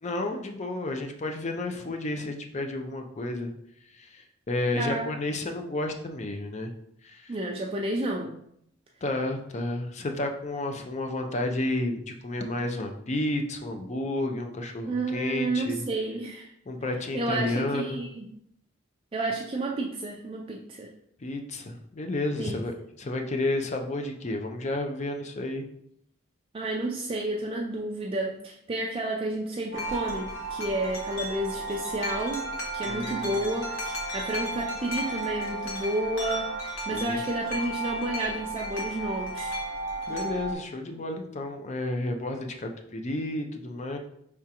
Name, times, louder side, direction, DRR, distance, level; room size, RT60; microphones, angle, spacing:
voice 1, 0.0-3.5 3.9-6.7 7.0-7.4 9.0-15.8 16.7-18.0 21.2-25.7 32.8-33.5 36.9-37.2 40.1-44.0, left 2 dB, 35° left, 4 dB, 0.5 m, -31 dB
voice 2, 4.8-5.1 7.3-8.4 14.9-16.5 17.1-18.3 19.1-20.9 22.4-22.6 26.5-32.5 32.7-39.6, right 2 dB, 30° right, 0 dB, 0.4 m, -31 dB
Wind chime, 29.7-40.5, right 1 dB, 85° left, 1.1 m, -33 dB
4.8 x 3.5 x 2.9 m, 0.73 s
head